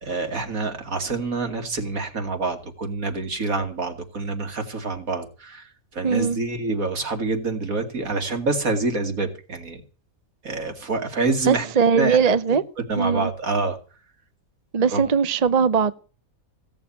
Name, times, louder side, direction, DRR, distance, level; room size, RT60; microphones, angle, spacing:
voice 1, 0.0-9.8 10.4-11.7 12.0-12.6 12.9-13.8 14.9-15.0, right 3 dB, 70° right, 2.8 m, -27 dB
voice 2, 6.0-6.4 11.5-12.6 13.0-13.3 14.7-15.9, right 6 dB, 40° right, 0.6 m, -20 dB
16.5 x 7.1 x 8.4 m
omnidirectional pair, 1.5 m